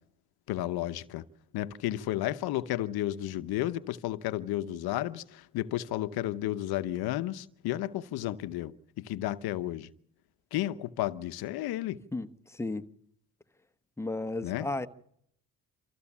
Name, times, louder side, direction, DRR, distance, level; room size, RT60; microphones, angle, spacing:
voice 1, 0.5-1.2 1.5-9.9 10.5-12.0 14.4-14.7, left 14 dB, 80° left, 0.9 m, -32 dB
voice 2, 12.1-12.9 14.0-14.9, left 2 dB, 5° left, 1.0 m, -34 dB
25.0 x 14.5 x 7.1 m
cardioid pair, 80°, 37 cm